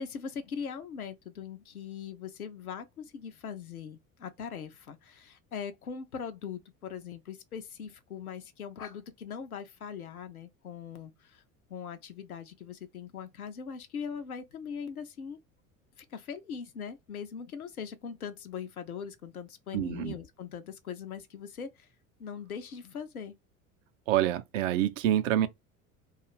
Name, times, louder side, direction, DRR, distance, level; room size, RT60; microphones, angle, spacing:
voice 1, 0.0-11.4 11.7-15.4 16.0-21.9 22.2-23.3, left 7 dB, 85° left, 0.6 m, -41 dB
voice 2, 19.7-20.1 24.1-25.5, right 12 dB, 60° right, 0.6 m, -27 dB
2.4 x 2.4 x 2.9 m
figure-of-eight pair, 65°, 43 cm